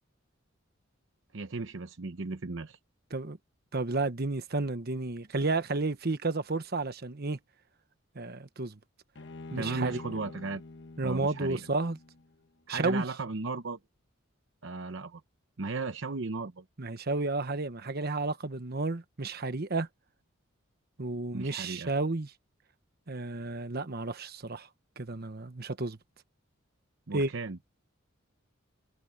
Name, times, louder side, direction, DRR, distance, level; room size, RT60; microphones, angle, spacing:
voice 1, 1.3-2.8 9.6-10.6 11.0-11.7 12.7-13.8 14.6-15.2 15.6-16.6 21.3-21.9 27.1-27.6, right 3 dB, 65° right, 0.8 m, -36 dB
voice 2, 3.7-7.4 8.1-8.8 9.5-10.0 11.0-12.0 12.7-13.0 16.8-19.9 21.0-22.3 23.1-24.7 25.0-26.0 27.1-27.3, right 3 dB, 50° right, 1.2 m, -32 dB
Bowed string instrument, 9.1-12.4, left 3 dB, 60° left, 1.2 m, -46 dB
head